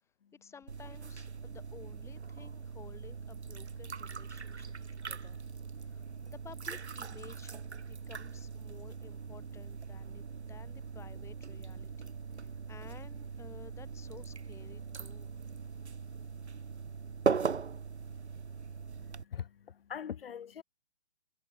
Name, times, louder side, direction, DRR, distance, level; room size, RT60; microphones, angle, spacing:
voice 1, 0.4-4.7 5.1-5.4 5.8-15.3, left 6 dB, 10° left, 7.1 m, -54 dB
sound 1, 0.7-19.2, right 5 dB, 90° right, 3.8 m, -40 dB
voice 2, 19.0-20.6, left 8 dB, 60° left, 3.7 m, -42 dB
hypercardioid pair, 155°, 32 cm